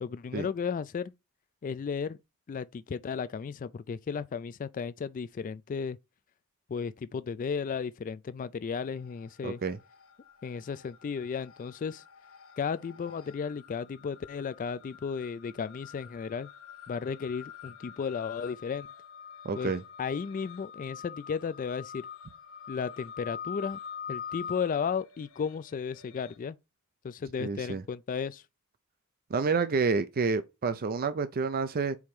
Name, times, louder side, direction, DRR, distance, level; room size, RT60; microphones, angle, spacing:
voice 1, 0.0-1.1 1.6-2.2 2.5-6.0 6.7-9.6 10.4-12.0 12.6-16.5 16.9-18.9 19.6-19.7 20.0-22.1 22.7-23.8 24.1-26.6 27.0-28.4, left 6 dB, 40° left, 0.3 m, -34 dB
sound 1, 8.9-9.5 9.7-26.4, left 8 dB, 65° left, 1.0 m, -45 dB
voice 2, 9.4-9.8 19.4-19.8 27.4-27.8 29.3-32.0, right 4 dB, 45° right, 0.5 m, -29 dB
4.8 x 4.4 x 5.3 m
head